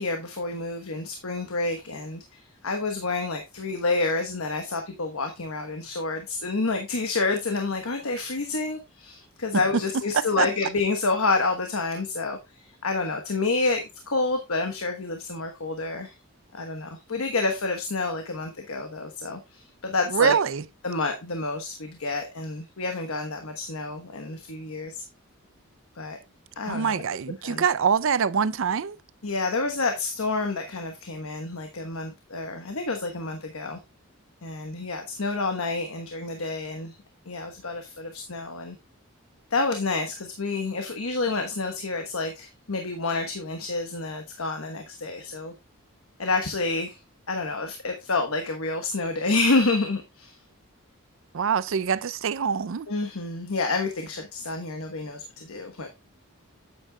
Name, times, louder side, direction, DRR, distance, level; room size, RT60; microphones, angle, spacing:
voice 1, 0.0-16.1 16.5-20.3 20.8-25.0 26.0-26.2 26.6-27.0 27.4-27.6 29.2-33.8 34.4-36.9 37.3-38.8 39.5-45.5 46.2-47.0 47.3-50.4 52.9-55.9, left 3 dB, 75° left, 1.2 m, -29 dB
voice 2, 10.1-10.5 20.1-20.6 26.6-29.0 51.3-52.9, right 6 dB, 60° right, 0.5 m, -24 dB
8.7 x 8.6 x 2.3 m
head